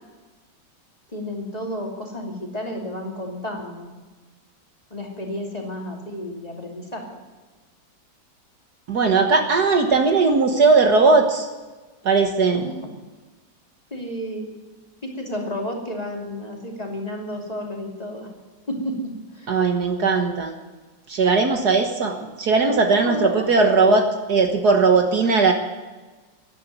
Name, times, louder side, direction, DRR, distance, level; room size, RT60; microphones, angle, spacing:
voice 1, 1.1-3.9 4.9-7.0 12.5-12.8 13.9-14.5 15.2-18.3 18.7-18.9 19.3-19.6 23.0-23.5 25.2-25.3, left 1 dB, 20° left, 0 dB, 2.7 m, -31 dB
voice 2, 8.9-11.5 12.0-12.6 19.5-20.5 21.1-25.5, right 4 dB, 60° right, 4 dB, 1.8 m, -18 dB
13.5 x 11.0 x 9.1 m, 1.3 s
omnidirectional pair, 2.1 m